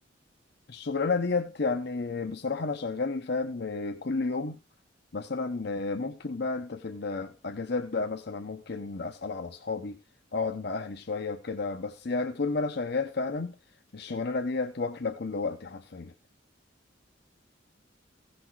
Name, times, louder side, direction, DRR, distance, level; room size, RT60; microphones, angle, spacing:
voice 1, 0.7-4.6 5.1-10.0 10.3-13.5 13.9-16.1, left 3 dB, 60° left, 0.9 m, -31 dB
16.0 x 6.1 x 4.7 m
head